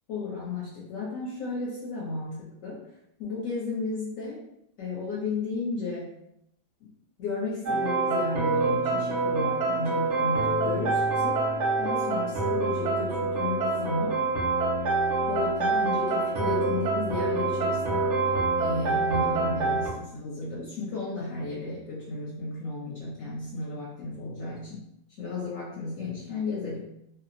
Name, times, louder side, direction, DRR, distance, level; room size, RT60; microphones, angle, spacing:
voice 1, 0.1-2.8 3.2-4.4 4.8-6.1 6.8-6.9 7.2-11.4 11.8-14.2 15.3-18.2 18.6-24.8 25.2-26.8, left 3 dB, 65° left, -6 dB, 1.0 m, -33 dB
sound 1, 7.7-19.9, right 3 dB, 65° right, 0.7 m, -26 dB
2.7 x 2.0 x 2.5 m, 0.77 s
omnidirectional pair, 1.8 m